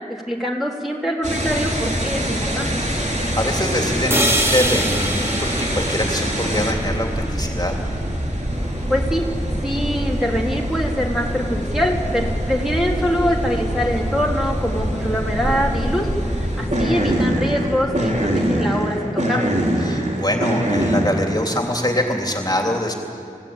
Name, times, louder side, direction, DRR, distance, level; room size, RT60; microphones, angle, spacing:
voice 1, 0.1-2.7 8.9-19.6, equal, ahead, -3 dB, 3.2 m, -24 dB
sound 1, 1.2-21.0, right 1 dB, 55° right, 3.8 m, -24 dB
voice 2, 2.9-7.8 19.8-22.9, left 1 dB, 30° left, 1 dB, 3.0 m, -24 dB
sound 2, 4.1-8.1, right 1 dB, 15° right, 2.4 m, -26 dB
sound 3, 8.5-18.3, equal, 35° right, 6.8 m, -32 dB
29.5 x 14.5 x 8.9 m, 2.6 s
wide cardioid pair, 40°, 15 cm